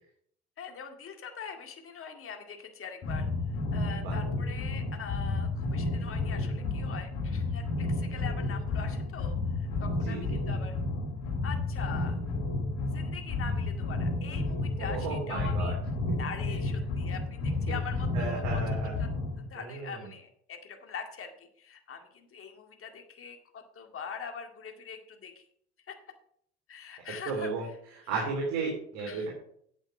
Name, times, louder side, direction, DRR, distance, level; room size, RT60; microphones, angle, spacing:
voice 1, 0.6-3.3 3.7-10.8 11.4-12.2 12.9-15.8 16.2-18.6 19.0-19.1 19.5-25.5 25.9-26.0 26.7-27.5 28.1-28.3 29.0-29.3, left 6 dB, 40° left, 4 dB, 2.1 m, -43 dB
sound 1, 3.0-19.4, left 2 dB, 55° left, 3.4 m, -31 dB
voice 2, 10.0-10.4 14.9-15.7 18.1-18.9 19.5-20.1 27.3-27.7 28.1-29.3, right 4 dB, 65° right, -1 dB, 3.1 m, -34 dB
8.8 x 7.8 x 5.9 m, 0.67 s
hypercardioid pair, 65°, 34 cm